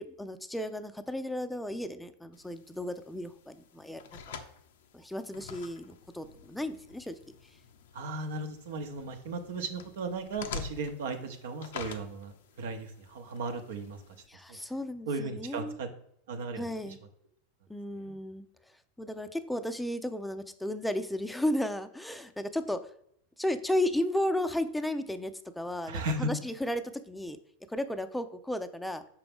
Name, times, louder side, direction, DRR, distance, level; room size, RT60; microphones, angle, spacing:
voice 1, 0.0-4.0 4.9-7.2 14.3-15.8 16.6-17.0 17.7-18.5 19.0-22.9 23.4-27.4 27.7-29.0, left 1 dB, 5° left, 8 dB, 0.5 m, -34 dB
sound 1, 2.3-14.3, left 6 dB, 70° left, 0.5 m, -47 dB
voice 2, 7.9-14.0 14.5-14.6 15.1-15.9 16.3-16.9 18.0-18.1 25.9-26.3, right 3 dB, 70° right, 6 dB, 0.8 m, -36 dB
5.9 x 4.8 x 3.5 m, 0.69 s
hypercardioid pair, 90°, 0 cm